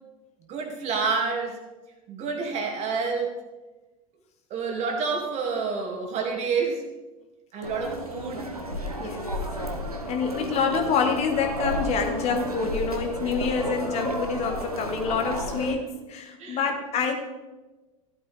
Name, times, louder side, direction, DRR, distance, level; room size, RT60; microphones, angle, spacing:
voice 1, 0.5-1.6 2.1-3.3 4.5-6.9 7.5-8.9 16.4-16.6, right 5 dB, 35° right, 2 dB, 2.5 m, -29 dB
sound 1, 7.6-15.7, equal, 85° right, 1.4 m, -32 dB
voice 2, 10.1-17.2, left 5 dB, 35° left, 4 dB, 1.5 m, -27 dB
14.5 x 12.0 x 3.5 m, 1.2 s
figure-of-eight pair, 80°, 19 cm